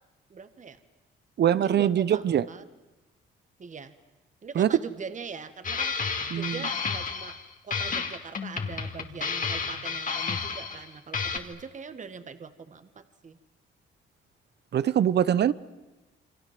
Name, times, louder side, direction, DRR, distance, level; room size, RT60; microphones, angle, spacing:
voice 1, 0.3-0.8 1.5-2.6 3.6-3.9 4.4-5.9 6.3-7.4 7.6-13.4, right 5 dB, 40° right, 2.0 m, -42 dB
voice 2, 1.4-2.4 4.5-4.7 6.3-6.7 14.7-15.5, right 10 dB, 60° right, 1.0 m, -23 dB
sound 1, 5.6-7.4 7.7-10.9 11.1-11.4, left 5 dB, 40° left, 2.7 m, -31 dB
28.5 x 25.0 x 7.7 m
cardioid pair, 90°, 20 cm